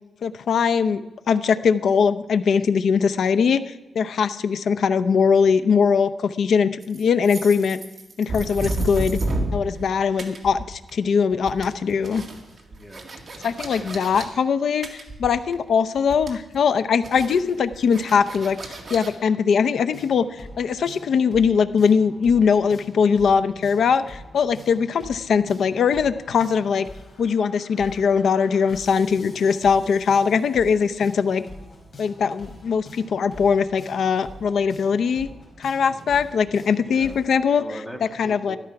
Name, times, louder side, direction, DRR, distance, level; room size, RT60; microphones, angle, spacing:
voice 1, 0.2-1.0 1.3-7.8 8.2-9.2 9.5-12.2 13.4-18.6 18.9-26.9 27.2-31.4 32.0-35.3 35.6-37.6 38.2-38.6, left 6 dB, 65° left, 12 dB, 0.6 m, -21 dB
sound 1, 6.8-9.9 10.2-11.1 11.3-14.2 14.8-15.7 16.0-16.6 17.0-19.1, right 2 dB, 35° right, 2.1 m, -31 dB
voice 2, 12.7-14.0 35.8-36.3 36.7-37.2 37.5-38.6, equal, 5° left, 2 dB, 1.6 m, -41 dB
sound 2, 19.9-37.3, left 1 dB, 35° left, 4.5 m, -44 dB
13.0 x 12.5 x 5.9 m, 1.1 s
wide cardioid pair, 150°, 0 cm